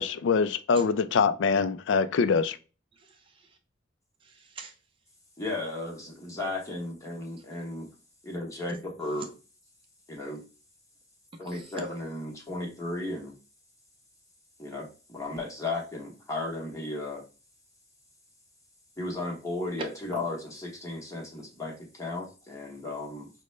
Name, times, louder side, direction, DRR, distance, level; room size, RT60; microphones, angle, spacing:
voice 1, 0.0-2.6, left 5 dB, 75° left, 0.4 m, -24 dB
voice 2, 2.9-3.6 4.2-4.8 7.5-7.6 9.2-9.3 11.3-11.7 19.8-19.9, right 3 dB, 30° right, 0.5 m, -44 dB
voice 3, 5.4-7.9 8.2-9.3 10.1-10.4 11.4-13.4 14.6-17.2 19.0-23.3, left 2 dB, 15° left, 0.9 m, -35 dB
5.0 x 2.1 x 3.1 m
head